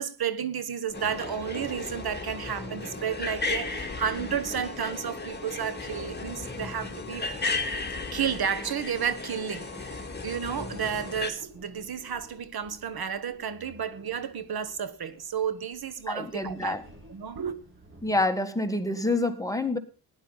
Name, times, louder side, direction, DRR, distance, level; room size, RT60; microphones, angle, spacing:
voice 1, 0.0-7.3 8.1-16.8 17.1-17.6, right 8 dB, 70° right, 1.3 m, -32 dB
sound 1, 0.9-11.3, left 3 dB, 25° left, 2.2 m, -35 dB
Subway metro underground, 0.9-18.1, right 1 dB, 30° right, 4.9 m, -48 dB
voice 2, 16.1-16.8 18.0-19.8, left 2 dB, 10° left, 1.7 m, -27 dB
16.0 x 10.5 x 3.9 m
wide cardioid pair, 90°, 38 cm